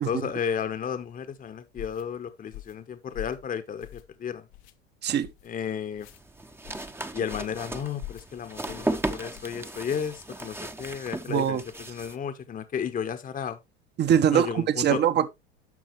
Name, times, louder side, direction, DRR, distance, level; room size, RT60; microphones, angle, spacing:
voice 1, 0.1-4.5 5.4-6.1 7.1-11.6 11.9-13.6 14.3-15.0, left 7 dB, 25° left, 1.1 m, -33 dB
sound 1, 1.8-2.0 2.5-2.8 3.1-3.5 3.8-4.2 4.5-4.7 5.2-5.5 5.9-6.2 6.6-6.9 7.3-7.6 8.0-8.3 8.7-8.9 9.3-9.6, left 15 dB, 55° left, 1.0 m, -43 dB
sound 2, 6.0-12.2, right 2 dB, 5° right, 0.9 m, -35 dB
voice 2, 11.3-11.6 14.0-15.3, right 9 dB, 35° right, 1.0 m, -23 dB
11.0 x 6.2 x 3.2 m
hypercardioid pair, 80°, 32 cm